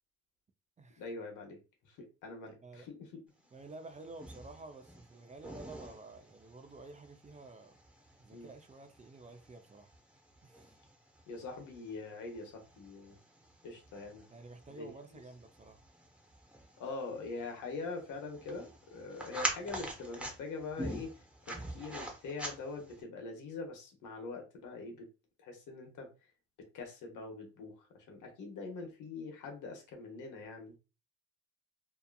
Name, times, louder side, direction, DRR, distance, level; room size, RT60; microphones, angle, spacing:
voice 1, 1.0-3.2 5.4-5.6 8.3-8.5 11.3-13.2 13.6-14.3 14.7-14.9 16.8-25.1 25.4-26.3 26.6-30.7, left 3 dB, 85° left, 1.0 m, -44 dB
voice 2, 3.5-7.7 8.2-9.9 10.4-10.6 14.3-15.8, right 3 dB, 25° right, 0.5 m, -51 dB
bathroom lights, 3.6-23.0, right 1 dB, 5° right, 0.8 m, -46 dB
2.8 x 2.4 x 2.3 m
cardioid pair, 90°, 30 cm